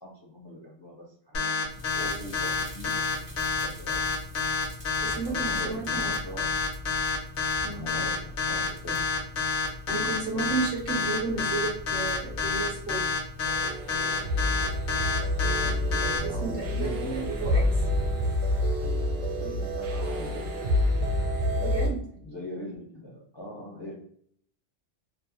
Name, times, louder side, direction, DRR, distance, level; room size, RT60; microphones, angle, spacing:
voice 1, 0.0-1.5 1.9-4.0 5.0-6.5 7.6-9.0 16.1-17.7 19.4-20.4 22.2-23.9, equal, 35° left, -4 dB, 0.5 m, -41 dB
sound 1, 1.3-16.2, left 5 dB, 70° left, 0.9 m, -28 dB
sound 2, 1.7-18.7, left 2 dB, 15° right, 0.5 m, -41 dB
voice 2, 5.0-6.2 7.6-7.9 9.9-13.1 16.2-17.6 21.6-22.2, right 4 dB, 60° right, 0 dB, 0.8 m, -33 dB
sound 3, 13.5-21.9, left 1 dB, 85° right, 0.9 m, -28 dB
2.6 x 2.0 x 2.9 m, 0.63 s
omnidirectional pair, 1.2 m